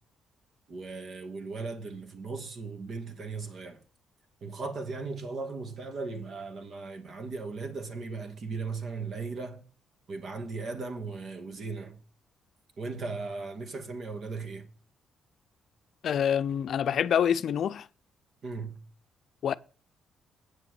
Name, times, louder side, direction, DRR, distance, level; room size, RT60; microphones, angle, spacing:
voice 1, 0.7-3.8 4.4-9.6 10.1-12.0 12.8-14.7 18.4-18.8, right 4 dB, 55° right, 2.3 m, -37 dB
voice 2, 16.0-17.9 19.4-19.5, left 8 dB, 65° left, 0.6 m, -26 dB
9.2 x 7.1 x 6.8 m
cardioid pair, 90°, 0 cm